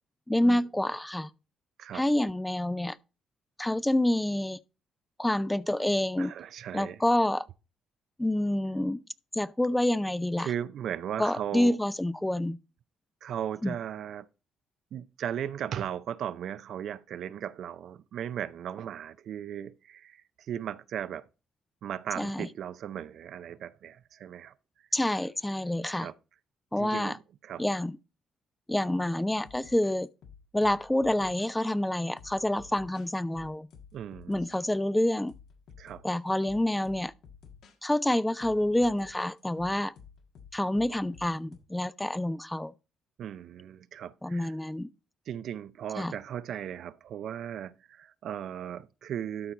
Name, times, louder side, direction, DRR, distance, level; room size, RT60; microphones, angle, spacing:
voice 1, 0.3-1.3 1.9-3.0 3.6-4.6 5.2-6.3 6.7-7.5 8.2-9.0 9.3-10.5 11.2-12.6 13.6-13.7 22.2-22.5 24.9-26.1 26.7-27.2 27.6-28.0 28.7-30.1 30.5-33.7 34.3-35.3 36.0-37.1 37.8-39.9 40.5-42.7 44.2-44.9 46.0-46.1, left 1 dB, 10° left, 0.4 m, -27 dB
voice 2, 6.2-7.0 10.4-11.8 13.2-14.3 14.9-21.2 21.8-24.9 25.9-26.1 26.8-27.6 33.9-34.4 35.8-36.0 43.2-44.5 45.3-49.5, right 9 dB, 65° right, 0.5 m, -37 dB
sound 1, 29.3-31.6 32.2-34.7 35.3-36.2 36.5-37.8 38.4-41.6, left 6 dB, 70° left, 1.5 m, -52 dB
12.5 x 4.5 x 3.9 m
cardioid pair, 90°, 0 cm